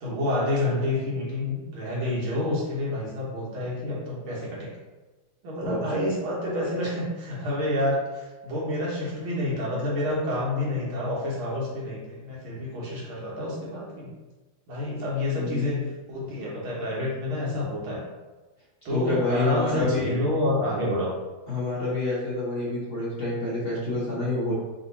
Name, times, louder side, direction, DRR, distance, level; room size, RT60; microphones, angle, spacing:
voice 1, 0.0-4.7 5.4-14.1 14.7-15.8 16.1-18.0 18.8-21.1, left 1 dB, 75° right, -5 dB, 2.0 m, -28 dB
voice 2, 15.4-15.9 18.9-20.1 21.5-24.5, left 2 dB, 45° left, -8 dB, 1.1 m, -28 dB
4.2 x 2.8 x 4.0 m, 1.2 s
omnidirectional pair, 2.3 m